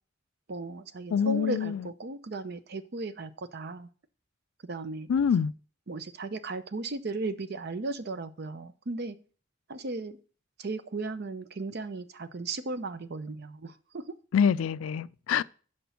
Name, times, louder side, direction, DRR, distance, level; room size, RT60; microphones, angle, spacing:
voice 1, 0.5-3.9 4.6-5.1 5.9-9.2 9.7-10.2 10.6-14.0, right 3 dB, 50° right, 0.6 m, -36 dB
voice 2, 1.1-1.9 5.1-5.5 14.3-15.4, left 7 dB, 85° left, 0.3 m, -25 dB
6.0 x 5.1 x 6.9 m
head